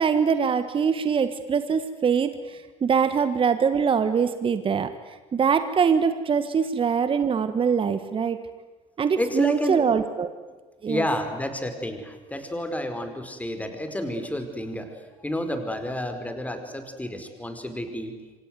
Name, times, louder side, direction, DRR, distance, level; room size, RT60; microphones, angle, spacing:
voice 1, 0.0-4.9 5.3-8.4 9.0-10.3 10.8-11.0, right 6 dB, 30° right, 11 dB, 1.6 m, -23 dB
voice 2, 9.2-9.8 10.8-18.1, left 1 dB, 10° left, 7 dB, 4.9 m, -30 dB
28.0 x 25.5 x 8.1 m, 1.3 s
figure-of-eight pair, 65°, 18 cm